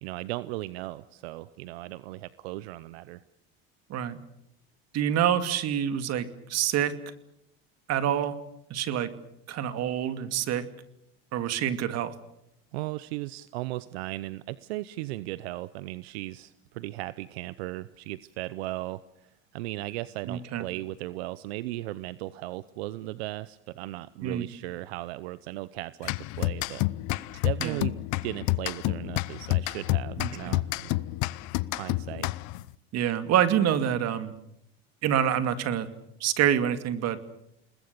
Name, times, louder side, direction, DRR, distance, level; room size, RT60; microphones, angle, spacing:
voice 1, 0.0-3.2 12.7-26.8 27.4-31.0 31.7-32.3, right 17 dB, 85° right, 16 dB, 0.8 m, -37 dB
voice 2, 4.9-6.9 7.9-8.4 8.7-9.1 9.5-10.6 11.3-12.1 20.3-20.6 24.2-24.5 27.6-27.8 30.2-30.6 32.9-34.3 35.0-35.9 36.2-37.3, right 10 dB, 55° right, 10 dB, 2.4 m, -26 dB
sound 1, 26.0-32.7, left 20 dB, 65° left, 0.8 m, -29 dB
29.5 x 20.5 x 6.9 m, 0.80 s
supercardioid pair, 95°, 31 cm